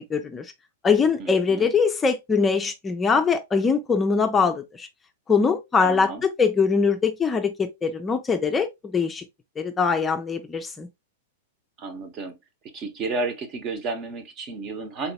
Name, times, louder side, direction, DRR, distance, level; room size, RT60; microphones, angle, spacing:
voice 1, 0.1-0.5 0.8-4.9 5.3-8.7 8.9-9.2 9.6-10.9, left 5 dB, 15° left, 0.5 m, -22 dB
voice 2, 1.2-1.7 5.8-6.2 11.8-12.4 12.7-15.1, right 3 dB, 35° right, 1.0 m, -32 dB
4.1 x 2.9 x 2.7 m
hypercardioid pair, 125°, 0 cm